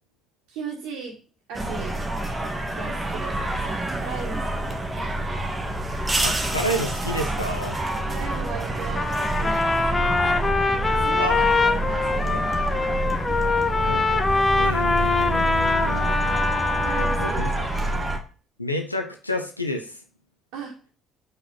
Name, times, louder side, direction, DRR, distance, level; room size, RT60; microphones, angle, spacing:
voice 1, 0.5-1.2 1.5-2.0 2.7-5.1 8.1-10.3 10.8-13.0 16.8-17.9 20.5-20.7, right 5 dB, 65° right, -5 dB, 2.1 m, -38 dB
sound 1, 1.5-18.2, right 1 dB, 20° right, 1.5 m, -27 dB
voice 2, 6.2-7.8 11.2-11.4 12.3-12.4 13.8-14.2 14.6-16.1 17.0-17.5 17.9-18.1 18.6-20.0, equal, 90° left, 4 dB, 0.6 m, -30 dB
Trumpet, 8.9-17.4, left 3 dB, 25° left, 0.8 m, -23 dB
5.7 x 4.7 x 5.8 m, 0.37 s
figure-of-eight pair, 50°, 0 cm